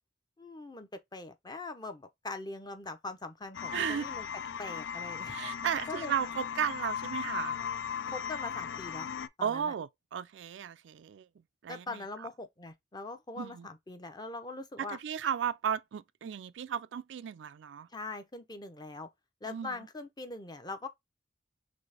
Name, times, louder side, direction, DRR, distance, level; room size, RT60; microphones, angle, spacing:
voice 1, 0.4-4.3 4.6-5.4 5.9-6.1 8.1-9.1 9.4-9.7 11.7-15.0 17.9-19.1 19.4-20.9, left 3 dB, 25° left, 0.6 m, -42 dB
sound 1, 3.5-9.3, left 7 dB, 85° left, 0.4 m, -37 dB
voice 2, 3.7-4.1 5.3-7.6 9.4-11.3 11.6-12.3 13.4-13.7 14.8-17.9 19.5-19.8, right 8 dB, 80° right, 0.4 m, -35 dB
4.1 x 3.2 x 3.3 m
head